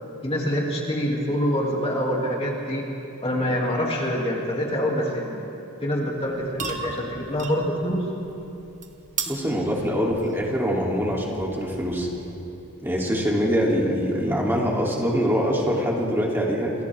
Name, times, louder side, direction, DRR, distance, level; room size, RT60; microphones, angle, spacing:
voice 1, 0.2-2.9 3.2-5.4 5.8-8.1, equal, 25° left, -3 dB, 2.9 m, -25 dB
sound 1, 6.2-12.6, right 4 dB, 35° right, 1.8 m, -38 dB
voice 2, 9.3-12.1 12.8-16.7, equal, 10° right, -4 dB, 3.3 m, -24 dB
29.0 x 28.5 x 3.7 m, 2.8 s
head